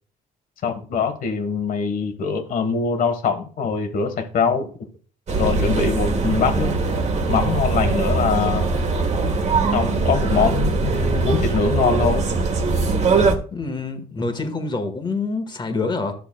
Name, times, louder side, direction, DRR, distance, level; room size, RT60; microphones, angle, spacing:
voice 1, 0.6-4.7 5.4-6.7 7.3-8.7 9.7-12.2, left 5 dB, 55° left, 7 dB, 1.3 m, -23 dB
sound 1, 5.3-13.3, right 3 dB, 40° right, 1.4 m, -21 dB
voice 2, 13.5-16.1, left 3 dB, 25° left, 6 dB, 1.4 m, -26 dB
12.0 x 6.9 x 2.2 m, 0.41 s
cardioid pair, 110°, 17 cm